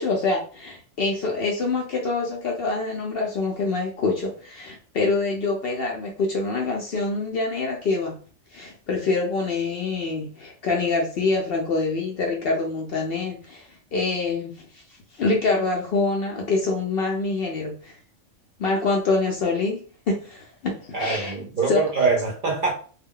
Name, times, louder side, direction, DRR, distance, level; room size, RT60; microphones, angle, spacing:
voice 1, 0.0-8.1 8.5-14.8 15.1-18.0 18.6-19.8 20.1-21.3 21.7-21.8, left 3 dB, 60° left, 0.6 m, -25 dB
voice 2, 20.9-22.7, right 4 dB, 50° right, 0.6 m, -24 dB
2.3 x 2.2 x 3.6 m
omnidirectional pair, 1.3 m